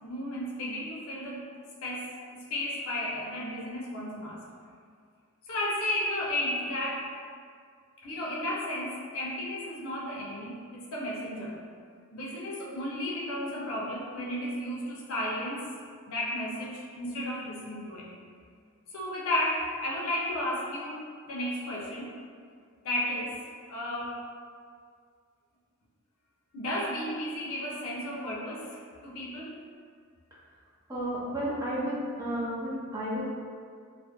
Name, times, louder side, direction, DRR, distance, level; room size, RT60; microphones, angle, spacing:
voice 1, 0.0-1.5 1.8-4.4 5.5-7.1 8.0-11.6 12.1-15.7 16.1-18.1 18.9-22.1 22.8-23.4 23.7-24.2 26.5-29.5, left 1 dB, 75° left, -4 dB, 0.5 m, -33 dB
voice 2, 30.9-33.2, equal, 15° right, -10 dB, 0.5 m, -32 dB
2.3 x 2.0 x 2.8 m, 2.1 s
head